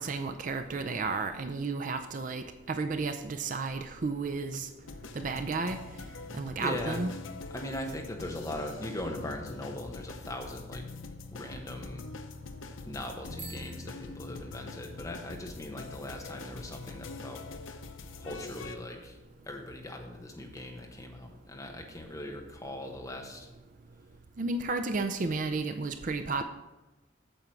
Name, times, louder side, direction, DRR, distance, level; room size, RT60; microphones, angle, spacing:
voice 1, 0.0-4.7 5.1-5.8 6.3-7.1 24.4-26.5, right 3 dB, 40° right, 7 dB, 0.5 m, -32 dB
sound 1, 4.8-18.8, left 3 dB, 85° left, 0.7 m, -44 dB
voice 2, 6.6-7.0 7.5-10.8 11.3-12.0 12.8-17.5 18.2-19.2 19.5-23.5, left 1 dB, 15° left, 1 dB, 1.2 m, -40 dB
Bicycle bell, 13.3-15.1, right 4 dB, 10° right, 1.0 m, -50 dB
8.9 x 7.0 x 4.6 m, 1.1 s
head